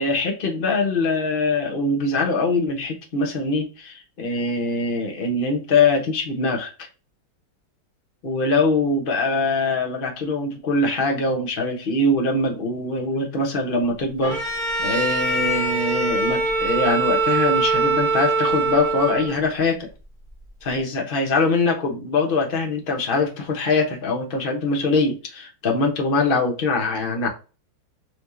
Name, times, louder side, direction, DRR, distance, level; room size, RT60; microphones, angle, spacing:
voice 1, 0.0-6.9 8.2-19.9 20.6-27.3, left 3 dB, 35° left, 1.0 m, -23 dB
Bowed string instrument, 14.2-19.5, right 3 dB, 25° right, 1.2 m, -23 dB
4.8 x 3.2 x 2.7 m
omnidirectional pair, 2.1 m